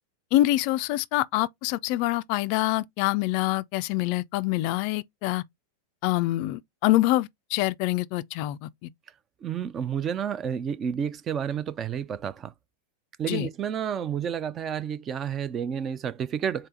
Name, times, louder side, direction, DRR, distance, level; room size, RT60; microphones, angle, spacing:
voice 1, 0.3-5.4 6.0-8.9 13.3-13.5, left 16 dB, 45° left, 0.3 m, -25 dB
voice 2, 9.4-12.5 13.2-16.7, right 8 dB, 25° right, 0.4 m, -30 dB
3.9 x 3.4 x 3.7 m
figure-of-eight pair, 90°, 0 cm